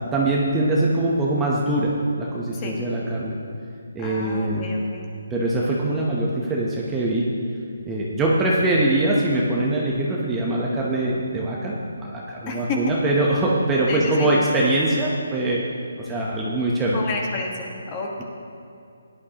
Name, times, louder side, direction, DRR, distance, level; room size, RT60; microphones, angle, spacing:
voice 1, 0.1-3.4 3.9-4.6 5.3-7.3 7.9-15.7 16.0-17.0, right 1 dB, 10° right, -5 dB, 0.9 m, -23 dB
voice 2, 4.0-5.1 12.5-12.8 13.9-14.3 16.9-18.2, left 4 dB, 20° left, 0 dB, 1.4 m, -30 dB
17.0 x 11.0 x 2.9 m, 2.6 s
hypercardioid pair, 165°, 0 cm